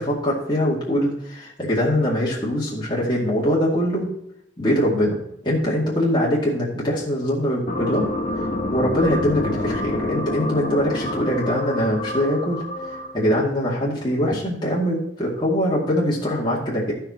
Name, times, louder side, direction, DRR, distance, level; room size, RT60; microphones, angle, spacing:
voice 1, 0.0-4.1 4.6-5.2 5.4-8.1 8.7-16.9, equal, 25° left, -6 dB, 2.4 m, -22 dB
sound 1, 7.7-13.3, left 1 dB, 40° left, 1.2 m, -28 dB
13.5 x 5.7 x 4.4 m, 0.78 s
head